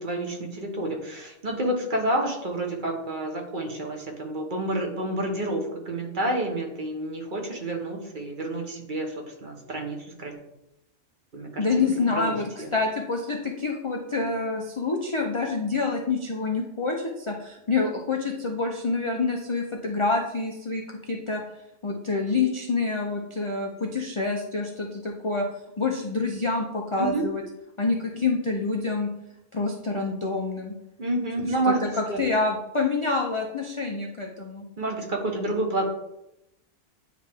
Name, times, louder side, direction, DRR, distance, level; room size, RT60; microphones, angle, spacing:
voice 1, 0.0-10.3 11.3-12.7 27.0-27.3 31.0-32.2 34.8-35.8, right 1 dB, 45° right, 2 dB, 1.0 m, -29 dB
voice 2, 11.6-21.4 21.8-25.5 25.8-27.4 27.8-29.1 29.5-30.7 31.4-34.7, left 3 dB, 45° left, 1 dB, 0.4 m, -27 dB
9.2 x 3.3 x 3.4 m, 0.86 s
omnidirectional pair, 1.3 m